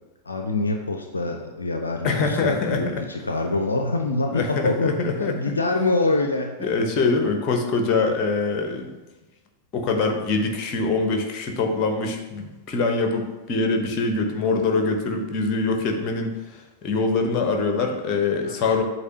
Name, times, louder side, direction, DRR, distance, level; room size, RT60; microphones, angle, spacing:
voice 1, 0.2-6.7 18.4-18.7, left 2 dB, 75° left, 4 dB, 0.5 m, -25 dB
voice 2, 2.0-3.0 4.3-5.3 6.6-8.9 9.7-18.8, left 3 dB, 35° left, 4 dB, 1.0 m, -24 dB
8.0 x 2.9 x 5.5 m, 1.2 s
figure-of-eight pair, 90°, 0 cm